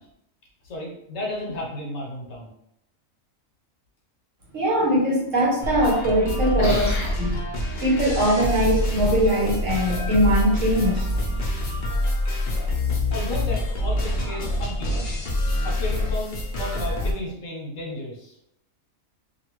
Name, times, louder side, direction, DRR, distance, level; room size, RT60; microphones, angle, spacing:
voice 1, 0.6-2.5 6.6-7.2 13.1-15.1 15.6-18.3, left 1 dB, 70° left, -2 dB, 1.2 m, -32 dB
voice 2, 4.5-6.8 7.2-7.3 7.8-11.1, equal, 70° right, -4 dB, 1.3 m, -21 dB
sound 1, 5.6-17.1, left 1 dB, 50° left, 0.7 m, -26 dB
2.8 x 2.4 x 3.0 m, 0.76 s
omnidirectional pair, 1.4 m